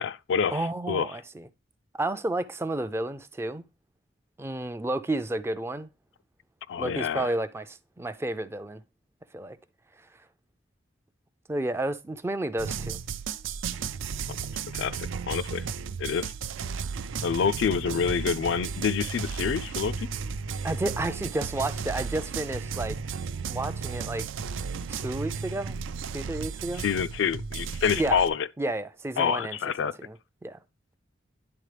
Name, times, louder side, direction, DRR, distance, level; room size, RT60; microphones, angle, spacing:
voice 1, 0.0-1.1 6.7-7.3 14.7-15.6 16.0-16.3 17.2-19.9 26.8-28.5 29.2-29.9, left 6 dB, 70° left, 0.3 m, -27 dB
voice 2, 0.5-1.5 1.9-3.6 4.4-5.9 6.8-8.8 9.3-9.6 11.5-13.0 20.6-23.0 23.5-24.3 24.9-25.8 26.1-26.8 28.0-28.2 28.6-30.2 30.4-30.6, right 2 dB, 15° right, 0.3 m, -31 dB
sound 1, 12.6-28.3, right 5 dB, 90° right, 0.4 m, -34 dB
11.0 x 3.8 x 3.3 m
head